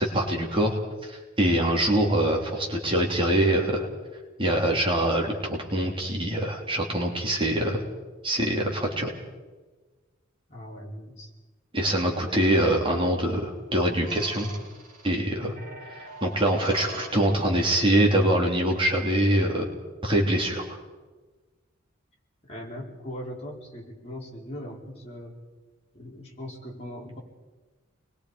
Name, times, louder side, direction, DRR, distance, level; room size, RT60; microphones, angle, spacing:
voice 1, 0.0-3.9 4.4-7.8 8.2-9.1 11.7-14.5 15.0-15.5 16.2-19.7 20.0-20.8, right 1 dB, 25° right, 0 dB, 3.3 m, -24 dB
voice 2, 10.5-11.3 11.9-12.2 22.4-25.3 25.9-27.2, equal, 35° left, -2 dB, 4.5 m, -40 dB
sound 1, 14.1-15.1 15.6-17.6, right 2 dB, 45° right, 5.4 m, -43 dB
29.0 x 21.5 x 5.1 m, 1.3 s
head